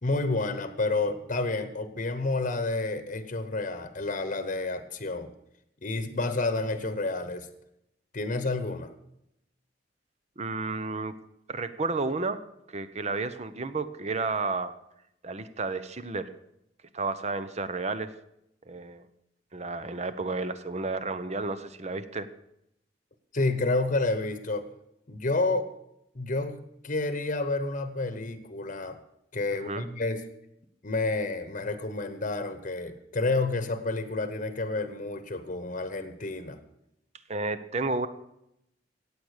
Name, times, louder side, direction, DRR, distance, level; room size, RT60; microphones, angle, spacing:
voice 1, 0.0-5.3 5.8-7.5 8.1-8.9 23.3-24.7 25.1-25.7 26.1-29.0 29.3-30.2 30.8-36.6, left 3 dB, 45° left, 10 dB, 1.1 m, -29 dB
voice 2, 10.4-11.1 11.5-12.4 12.7-14.7 15.2-16.3 16.9-18.1 18.7-19.1 19.5-22.3 29.5-29.9 37.3-38.1, right 3 dB, 40° right, 12 dB, 0.9 m, -32 dB
15.5 x 8.8 x 6.6 m, 0.80 s
head